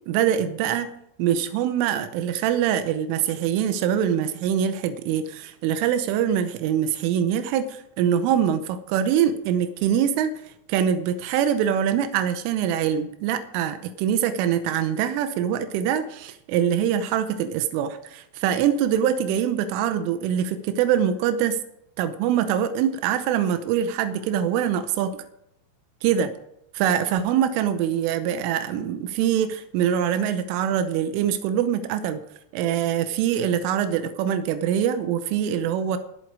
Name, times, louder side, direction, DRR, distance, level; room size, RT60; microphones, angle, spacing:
voice 1, 0.1-10.3 10.7-21.6 22.0-25.3 26.0-26.3 26.8-32.2 32.5-36.0, right 9 dB, 90° right, 9 dB, 3.4 m, -24 dB
21.5 x 8.1 x 4.8 m, 0.79 s
omnidirectional pair, 5.5 m